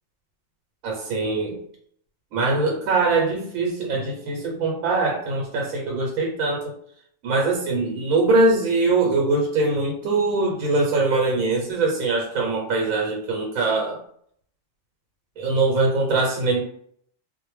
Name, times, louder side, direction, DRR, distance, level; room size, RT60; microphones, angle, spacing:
voice 1, 0.8-1.6 2.3-6.7 7.2-14.0 15.4-16.6, right 3 dB, 90° right, 0 dB, 1.0 m, -22 dB
2.4 x 2.1 x 3.0 m, 0.66 s
omnidirectional pair, 1.4 m